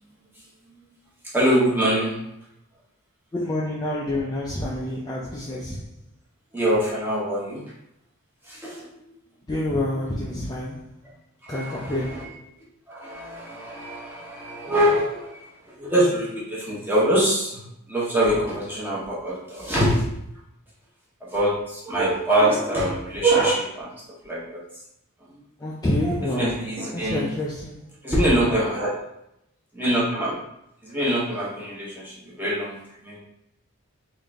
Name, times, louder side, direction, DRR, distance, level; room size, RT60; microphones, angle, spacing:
voice 1, 1.3-2.2 6.5-7.6 8.4-9.0 11.4-12.3 12.9-15.5 15.8-17.6 17.9-20.1 21.2-23.9 24.2-24.6 26.0-27.3 28.0-28.9 29.7-30.4 30.8-33.2, right 1 dB, 10° right, -7 dB, 1.0 m, -24 dB
voice 2, 3.3-5.8 9.5-10.8 11.5-12.3 25.6-26.6 26.9-27.8, left 1 dB, 20° left, -4 dB, 0.4 m, -27 dB
3.6 x 2.6 x 3.4 m, 0.81 s
head